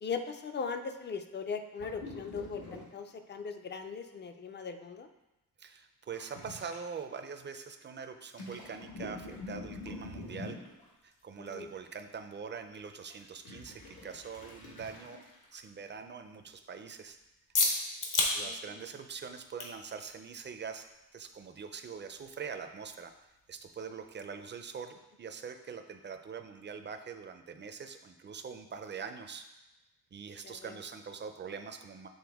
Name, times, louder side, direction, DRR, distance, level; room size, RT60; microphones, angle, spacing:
voice 1, 0.0-5.1 11.4-11.7 18.3-18.8 30.4-30.8, left 5 dB, 30° left, 8 dB, 0.4 m, -39 dB
sound 1, 1.8-2.8 3.2-3.3 6.1-6.8 8.3-10.8 13.1-15.6 15.9-16.0, left 2 dB, 85° left, 1.6 m, -45 dB
voice 2, 5.6-10.6 11.0-15.2 15.5-17.2 18.3-20.9 21.1-23.1 23.5-29.5 30.1-32.1, right 6 dB, 30° right, 7 dB, 0.4 m, -43 dB
sound 2, 9.2-24.5, left 3 dB, 60° left, 1.0 m, -40 dB
7.9 x 4.0 x 3.4 m, 0.97 s
wide cardioid pair, 160°, 35 cm